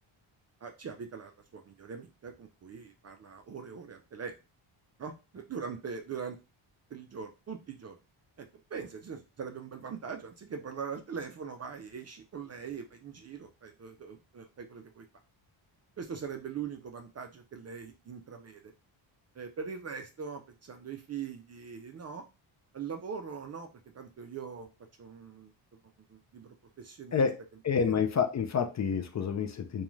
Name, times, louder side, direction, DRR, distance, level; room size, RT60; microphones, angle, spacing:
voice 1, 0.6-4.3 5.0-6.4 6.9-8.0 8.4-15.1 16.0-18.7 19.3-22.2 22.7-23.7 23.9-24.7 25.0-25.5 26.1-27.2 27.7-28.0, right 6 dB, 35° right, 5 dB, 0.4 m, -42 dB
voice 2, 27.6-29.8, left 6 dB, 35° left, 7 dB, 0.4 m, -28 dB
2.4 x 2.3 x 3.0 m, 0.28 s
cardioid pair, 75°, 50 cm